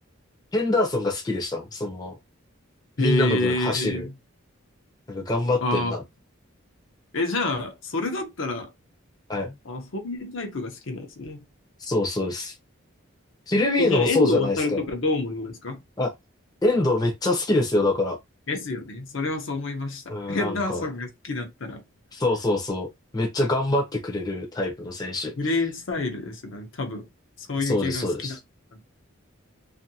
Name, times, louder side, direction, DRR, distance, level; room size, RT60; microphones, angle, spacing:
voice 1, 0.5-2.1 3.0-4.1 5.1-6.0 9.3-9.5 11.9-12.5 13.5-14.8 16.0-16.1 16.6-18.2 20.1-20.8 22.1-25.3 27.7-28.4, left 2 dB, 20° left, 0.6 m, -25 dB
voice 2, 3.0-4.1 5.6-6.0 7.1-8.7 9.6-11.4 13.8-15.8 18.5-21.8 25.4-27.1 27.4-28.4 28.7-28.8, left 2 dB, 65° left, 0.7 m, -28 dB
2.6 x 2.5 x 2.7 m
head